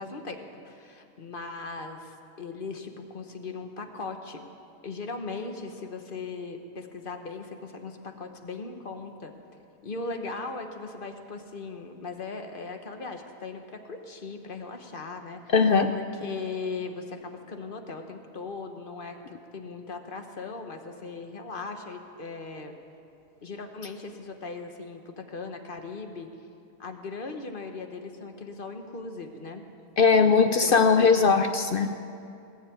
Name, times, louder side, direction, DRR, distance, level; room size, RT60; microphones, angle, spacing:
voice 1, 0.0-4.4 4.8-9.3 9.8-15.5 15.9-22.8 23.4-26.3 26.8-29.6 30.4-31.4, left 4 dB, 40° left, 5 dB, 1.2 m, -38 dB
voice 2, 15.5-15.9 30.0-32.0, left 5 dB, 60° left, 8 dB, 0.6 m, -20 dB
19.0 x 7.7 x 9.3 m, 2.6 s
omnidirectional pair, 1.5 m